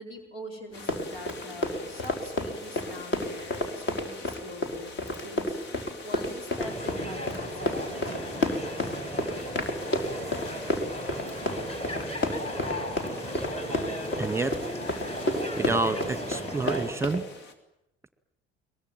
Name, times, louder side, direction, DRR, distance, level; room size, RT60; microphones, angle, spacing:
voice 1, 0.0-9.0, equal, 90° left, 3 dB, 4.5 m, -44 dB
sound 1, 0.7-17.5, left 3 dB, 65° left, 3.3 m, -45 dB
Run, 0.7-17.2, left 1 dB, 40° left, 4.9 m, -30 dB
sound 2, 6.6-16.9, equal, 20° left, 6.0 m, -35 dB
voice 2, 14.2-14.6 15.6-17.2, right 3 dB, 10° right, 11 dB, 1.9 m, -28 dB
23.0 x 22.0 x 9.1 m, 0.86 s
hypercardioid pair, 60°, 29 cm